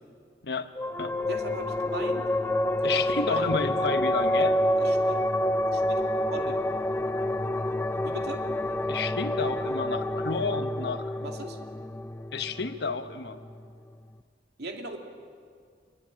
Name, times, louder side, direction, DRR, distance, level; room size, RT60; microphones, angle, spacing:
sound 1, 0.8-13.6, left 1 dB, 15° left, 0.6 m, -28 dB
voice 1, 1.3-2.3 2.8-3.5 4.8-5.2 5.7-6.0 6.3-6.5 8.0-8.4 11.2-11.6 14.6-15.0, right 1 dB, 60° right, 3 dB, 2.8 m, -38 dB
voice 2, 2.8-4.6 8.9-11.1 12.3-13.4, left 4 dB, 65° left, 8 dB, 1.3 m, -31 dB
25.5 x 22.5 x 8.9 m, 2.1 s
head